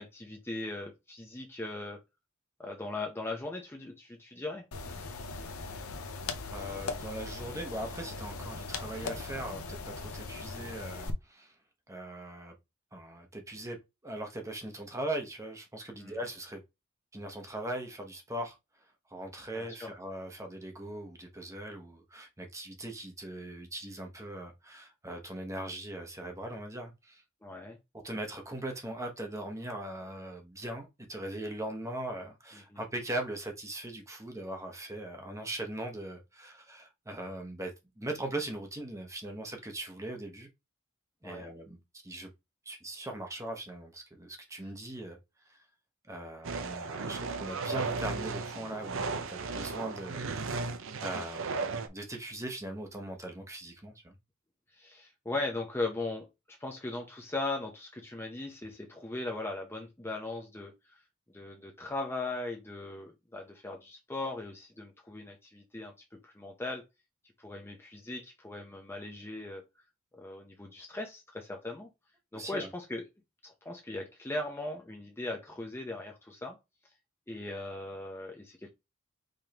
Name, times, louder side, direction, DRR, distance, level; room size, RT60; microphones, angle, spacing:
voice 1, 0.0-2.0 2.6-4.6 16.0-16.2 19.5-19.9 27.4-27.8 32.7-32.8 41.2-41.4 54.7-61.0 61.3-65.9 66.2-66.8 67.4-69.6 70.1-71.9 72.3-73.0 73.4-76.6 77.3-78.7, left 2 dB, 10° left, 0.7 m, -39 dB
sound 1, 4.7-11.1, left 4 dB, 80° left, 0.7 m, -39 dB
voice 2, 6.5-11.5 11.9-12.5 12.9-13.8 14.0-16.6 17.1-18.6 19.1-27.2 27.9-40.5 41.2-41.8 42.0-42.3 42.6-45.2 45.5-45.6 46.1-50.7 51.0-54.1 72.3-72.7, right 1 dB, 15° right, 1.0 m, -40 dB
sound 2, 46.4-51.9, right 4 dB, 65° right, 0.6 m, -35 dB
5.1 x 3.6 x 2.9 m
head